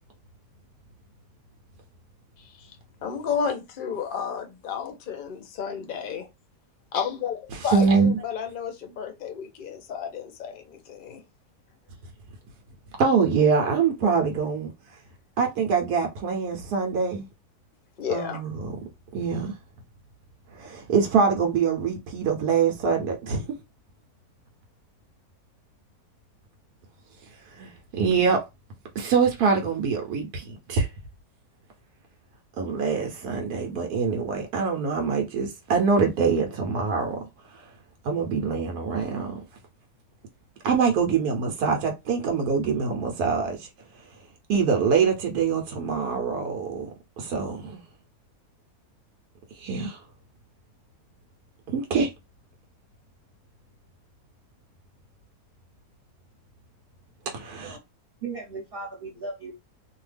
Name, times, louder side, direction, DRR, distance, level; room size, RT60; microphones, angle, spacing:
voice 1, 3.0-6.3 6.9-11.2 14.0-14.1 18.0-18.4, left 7 dB, 50° left, 0.6 m, -32 dB
voice 2, 7.7-8.1 13.0-14.7 15.4-17.3 18.1-18.8 19.1-19.5 20.6-23.4 27.6-28.4 28.9-30.4 30.7-30.9 32.6-37.2 38.0-39.3 40.6-43.7 44.5-46.8 47.2-47.8 49.6-50.0 51.7-52.1 57.3-57.8, right 5 dB, 80° right, 1.2 m, -24 dB
voice 3, 58.2-59.5, right 4 dB, 45° right, 0.9 m, -36 dB
2.7 x 2.3 x 3.3 m
omnidirectional pair, 1.6 m